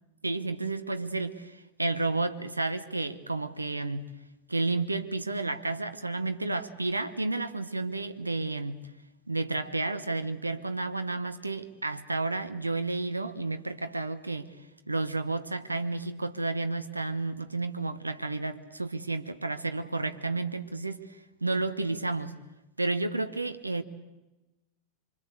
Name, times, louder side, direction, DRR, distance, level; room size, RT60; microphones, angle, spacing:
voice 1, 0.2-4.1 4.5-8.8 9.3-14.5 14.9-22.4 22.8-23.8, right 3 dB, 80° right, 10 dB, 1.1 m, -31 dB
25.5 x 25.0 x 8.1 m, 1.0 s
figure-of-eight pair, 90°, 0 cm